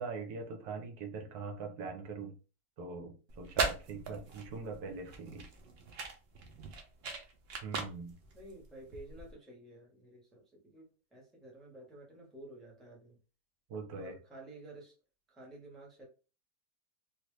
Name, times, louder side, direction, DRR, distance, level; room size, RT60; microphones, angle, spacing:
voice 1, 0.0-2.3 2.8-5.5 7.6-8.1 13.7-14.1, right 4 dB, 75° right, 3 dB, 1.3 m, -42 dB
sound 1, 3.3-9.3, right 4 dB, 55° right, 0.7 m, -39 dB
voice 2, 8.3-13.2 14.0-14.9 15.3-16.1, right 1 dB, ahead, -2 dB, 0.7 m, -52 dB
3.3 x 2.5 x 3.1 m, 0.33 s
omnidirectional pair, 1.7 m